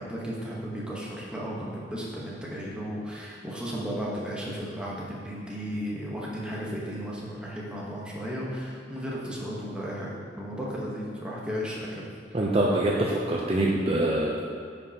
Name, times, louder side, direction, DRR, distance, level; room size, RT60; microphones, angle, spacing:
voice 1, 0.0-12.0 12.3-12.4, equal, 5° right, -5 dB, 1.1 m, -34 dB
voice 2, 12.3-14.4, right 1 dB, 30° right, -2 dB, 0.5 m, -24 dB
9.2 x 5.3 x 2.8 m, 2.3 s
head